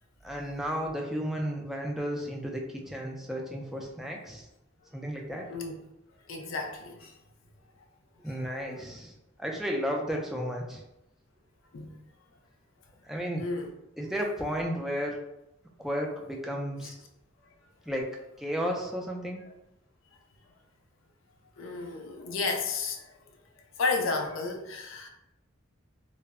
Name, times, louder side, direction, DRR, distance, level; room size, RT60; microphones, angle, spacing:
voice 1, 0.2-4.5 4.9-5.5 8.2-9.1 9.4-10.8 13.1-13.4 14.0-15.2 15.8-17.0 17.9-18.1 18.4-19.4, equal, ahead, -1 dB, 0.3 m, -33 dB
voice 2, 6.3-7.1 8.7-8.8 11.7-11.9 13.4-13.7 21.6-23.1 23.8-25.1, left 4 dB, 75° left, 3 dB, 0.5 m, -32 dB
2.1 x 2.0 x 3.5 m, 0.88 s
head